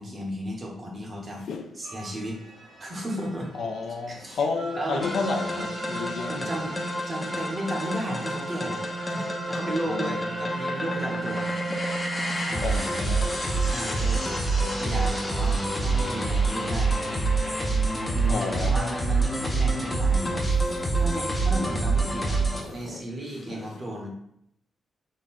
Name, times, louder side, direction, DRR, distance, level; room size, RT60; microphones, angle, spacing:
voice 1, 0.0-1.4 1.7-2.4 2.8-3.5 4.1-4.4 4.7-5.1 6.3-6.8 7.1-11.5 12.5-12.9 13.6-14.4 14.8-17.0 17.7-20.4 20.9-22.4 22.7-24.1, right 1 dB, 30° right, 0.8 m, -34 dB
sound 1, 1.8-17.1, right 1 dB, 70° right, 1.3 m, -42 dB
voice 2, 3.6-6.5 9.9-10.1 12.6-13.4 18.3-18.7 22.5-23.0 23.5-23.7, left 4 dB, 60° left, 0.4 m, -31 dB
sound 2, 5.0-22.6, right 2 dB, 20° left, 0.6 m, -27 dB
3.7 x 2.1 x 4.1 m
wide cardioid pair, 140°, 0 cm